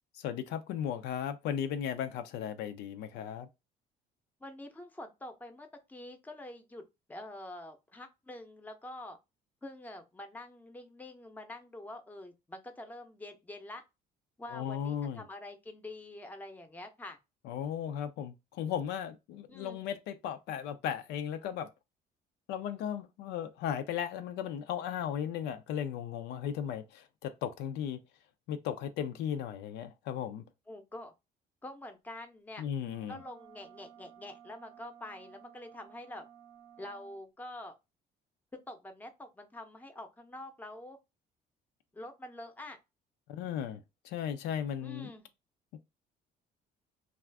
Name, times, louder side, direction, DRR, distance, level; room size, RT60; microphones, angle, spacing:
voice 1, 0.2-3.5 14.5-15.2 17.5-21.7 22.5-28.0 28.5-30.4 32.6-33.2 43.3-45.1 45.7-45.8, left 9 dB, 85° left, 0.4 m, -36 dB
voice 2, 4.4-6.8 7.1-9.2 9.6-13.8 14.4-17.2 19.5-19.8 30.7-31.1 31.6-32.6 33.1-36.2 36.8-37.8 38.7-41.0 41.9-42.8 44.8-45.3, left 1 dB, 10° left, 0.6 m, -46 dB
sound 1, 32.8-37.2, right 9 dB, 85° right, 0.6 m, -56 dB
2.4 x 2.4 x 3.3 m
cardioid pair, 110°, 17 cm